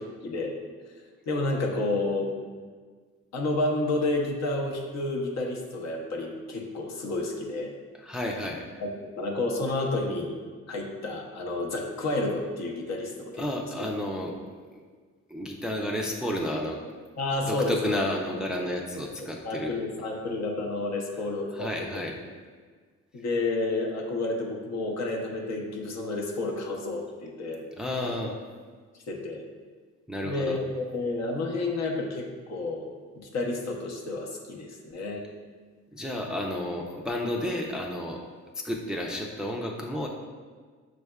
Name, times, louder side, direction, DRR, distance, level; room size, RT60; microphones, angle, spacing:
voice 1, 0.2-0.5 1.3-2.3 3.3-7.7 8.8-10.3 10.7-13.4 17.2-18.0 19.4-22.1 23.1-27.6 28.0-28.1 29.1-29.4 30.2-35.2, left 2 dB, 60° left, 1 dB, 0.8 m, -30 dB
voice 2, 7.9-8.6 13.4-14.3 14.7-14.8 15.3-16.8 17.5-19.8 21.5-22.2 27.8-28.3 30.1-30.6 35.9-38.2 38.5-40.1, left 1 dB, ahead, 0 dB, 0.4 m, -31 dB
6.2 x 3.3 x 2.2 m, 1.5 s
cardioid pair, 90°, 30 cm